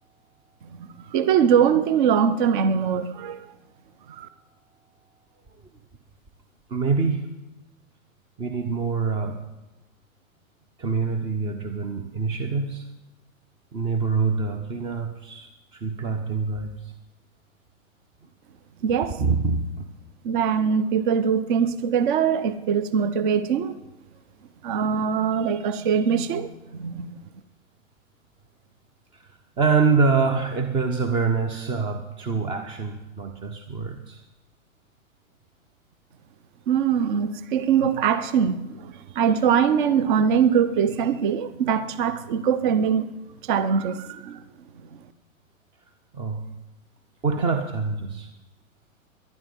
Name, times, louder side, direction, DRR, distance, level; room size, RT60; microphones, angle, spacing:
voice 1, 0.8-3.5 4.1-4.3 18.8-19.2 20.2-23.7 24.6-27.1 36.7-43.1 43.4-44.4, right 7 dB, 35° right, 0.9 m, -22 dB
voice 2, 6.7-7.2 8.4-9.4 10.8-12.9 13.7-16.9 19.2-19.9 29.1-29.3 29.6-34.2 46.1-46.5 47.2-48.3, right 4 dB, 10° right, 0.6 m, -25 dB
19.5 x 11.5 x 5.3 m
figure-of-eight pair, 115°, 42 cm